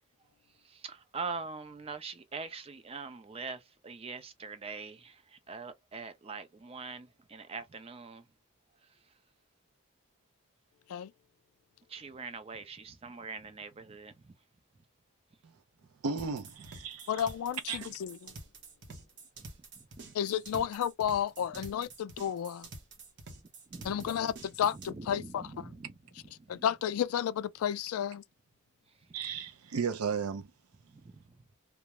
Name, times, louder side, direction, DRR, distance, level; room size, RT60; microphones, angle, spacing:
voice 1, 0.6-8.2 11.9-14.3 19.4-19.5 20.5-20.7 23.7-24.2 24.7-25.9 26.4-26.6 30.9-31.4, right 4 dB, 25° right, 0.4 m, -43 dB
voice 2, 16.0-17.3 17.7-17.9 29.1-30.5, right 5 dB, 85° right, 0.5 m, -34 dB
sound 1, 16.2-24.9, right 3 dB, 50° right, 0.7 m, -49 dB
voice 3, 17.1-18.3 20.1-22.7 23.8-25.7 26.5-28.2, left 9 dB, 80° left, 0.3 m, -32 dB
2.3 x 2.0 x 2.8 m
head